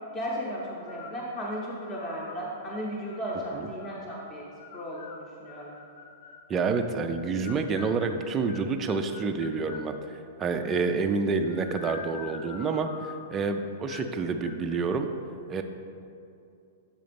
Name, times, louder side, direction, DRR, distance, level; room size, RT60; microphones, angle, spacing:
voice 1, 0.1-4.5 4.7-5.7, equal, 15° left, -5 dB, 0.8 m, -35 dB
sound 1, 0.8-1.3 1.8-2.4 3.0-4.0 4.6-6.5 7.1-9.9 10.4-11.0 11.4-13.4 13.9-14.2 14.4-14.9, left 6 dB, 55° left, 0.5 m, -46 dB
voice 2, 6.5-15.1 15.5-15.6, right 4 dB, 15° right, 5 dB, 0.3 m, -28 dB
7.5 x 3.9 x 5.2 m, 2.5 s
supercardioid pair, 170°, 0 cm